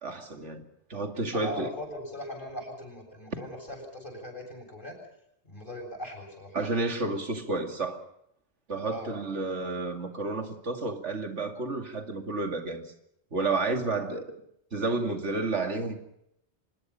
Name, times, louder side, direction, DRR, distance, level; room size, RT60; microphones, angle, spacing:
voice 1, 0.0-1.7 6.5-8.0 8.7-12.8 13.3-14.3 14.7-16.0, right 3 dB, 85° right, 5 dB, 2.8 m, -31 dB
voice 2, 1.3-4.9 5.4-6.6 8.9-9.1, equal, 45° left, 3 dB, 7.6 m, -40 dB
25.0 x 20.5 x 5.7 m, 0.78 s
omnidirectional pair, 1.2 m